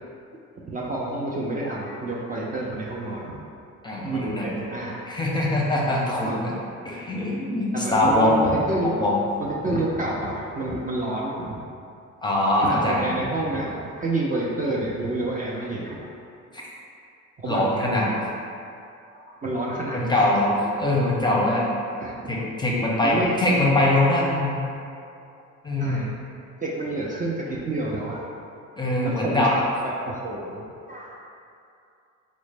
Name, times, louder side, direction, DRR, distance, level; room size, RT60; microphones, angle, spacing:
voice 1, 0.7-3.4 4.0-5.1 6.2-6.6 7.7-9.1 9.4-11.6 12.6-16.0 17.4-18.2 19.4-20.2 20.7-20.8 22.0-22.3 23.0-23.4 25.0-25.1 25.8-26.1 26.6-28.3 29.0-31.1, right 2 dB, 25° right, -5 dB, 0.4 m, -29 dB
voice 2, 3.8-4.5 5.1-6.5 6.8-8.3 8.8-9.2 12.2-13.1 16.5-16.6 17.4-18.1 19.9-21.7 22.3-24.6 25.6-26.1 28.8-29.5, left 1 dB, 15° left, -4 dB, 0.6 m, -22 dB
3.9 x 2.1 x 3.2 m, 2.5 s
cardioid pair, 90°, 30 cm